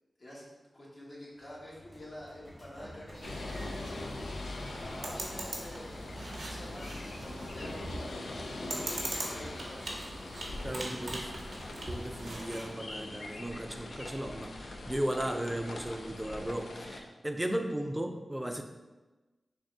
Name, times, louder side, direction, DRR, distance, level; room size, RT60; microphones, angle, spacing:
voice 1, 0.2-4.1 4.8-9.9 10.5-11.2, equal, 55° left, -5 dB, 1.2 m, -48 dB
Train / Sliding door, 1.4-7.9, equal, 30° left, 1.2 m, -53 dB
sound 1, 3.1-12.7, right 1 dB, 80° right, 0.7 m, -42 dB
sound 2, 3.2-17.0, left 2 dB, 85° left, 0.4 m, -42 dB
voice 2, 10.6-11.3 11.9-18.6, right 1 dB, 15° right, 5 dB, 0.4 m, -36 dB
3.7 x 2.5 x 3.6 m, 1.2 s
cardioid pair, 55°, 0 cm